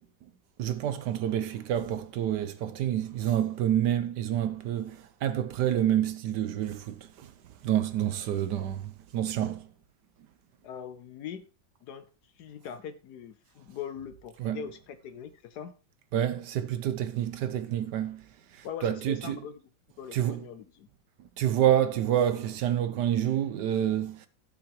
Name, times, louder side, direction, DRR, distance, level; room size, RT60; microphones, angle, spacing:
voice 1, 0.6-7.3 7.6-9.7 14.4-14.6 16.1-18.2 18.8-19.4 20.1-20.4 21.4-24.3, right 11 dB, 70° right, 1.2 m, -28 dB
voice 2, 10.6-11.5 11.8-12.1 12.4-15.7 18.6-19.6 20.0-20.9, left 8 dB, 65° left, 1.1 m, -41 dB
15.5 x 5.8 x 3.0 m
omnidirectional pair, 2.1 m